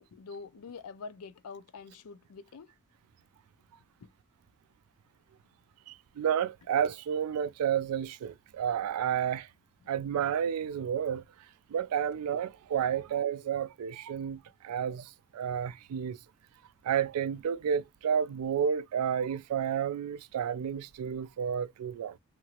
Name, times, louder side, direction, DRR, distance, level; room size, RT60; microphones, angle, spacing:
voice 1, 0.0-2.7 4.0-4.1 9.8-9.9, left 4 dB, 75° left, 0.4 m, -46 dB
voice 2, 5.9-9.5 9.9-11.2 11.7-16.2 16.8-22.2, right 8 dB, 75° right, 0.3 m, -31 dB
2.9 x 2.5 x 2.8 m
head